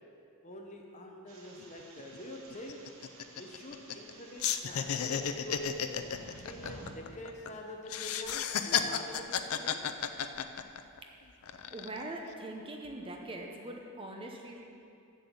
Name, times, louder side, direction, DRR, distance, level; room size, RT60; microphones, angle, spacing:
voice 1, 0.4-2.8 3.3-5.7 6.4-9.8, left 1 dB, 30° left, 1 dB, 0.9 m, -46 dB
sound 1, 1.3-6.9, right 2 dB, 70° right, 1.2 m, -53 dB
sound 2, 1.6-1.7 2.0-2.2 2.5-4.1 4.4-7.5 7.9-11.0 11.4-12.0, left 8 dB, 75° left, 0.5 m, -33 dB
voice 2, 11.4-14.6, right 1 dB, 25° right, 1 dB, 0.8 m, -42 dB
7.8 x 7.6 x 7.0 m, 2.6 s
head